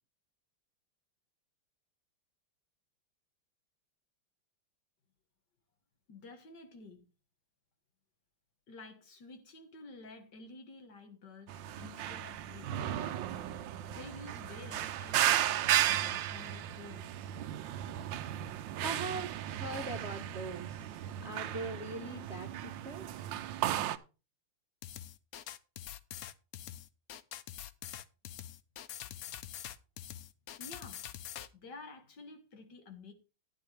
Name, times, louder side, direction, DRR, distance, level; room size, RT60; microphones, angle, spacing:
voice 1, 6.1-7.0 8.7-13.4 13.9-17.1 29.1-29.5 30.6-31.0 31.5-33.1, left 3 dB, 55° left, 2.0 m, -51 dB
sound 1, 11.5-24.0, right 12 dB, 70° right, 1.3 m, -35 dB
voice 2, 18.8-20.9 21.2-23.1, right 2 dB, 40° right, 1.0 m, -41 dB
sound 2, 24.8-31.5, left 11 dB, 80° left, 0.8 m, -45 dB
11.5 x 10.0 x 3.3 m
omnidirectional pair, 2.3 m